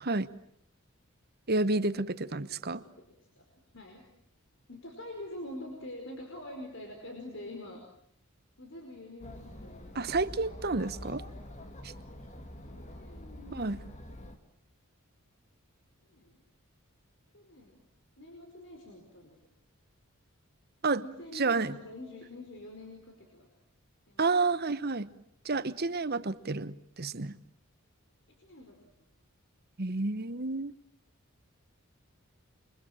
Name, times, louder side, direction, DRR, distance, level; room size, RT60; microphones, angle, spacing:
voice 1, 1.5-2.8 9.9-11.2 11.8-11.9 13.5-13.8 20.8-21.0 21.3-21.7 24.2-25.1 25.4-27.4 29.8-30.7, right 3 dB, 45° right, 14 dB, 1.1 m, -30 dB
voice 2, 4.7-7.8 8.6-9.9 12.7-13.7 16.1-16.4 17.3-17.8 18.2-19.4 21.0-23.5 24.1-24.3 28.4-29.1, left 1 dB, 55° left, 2 dB, 5.0 m, -45 dB
Chatter, 9.2-14.4, left 1 dB, 35° left, 2.4 m, -46 dB
28.5 x 23.5 x 8.9 m, 0.69 s
head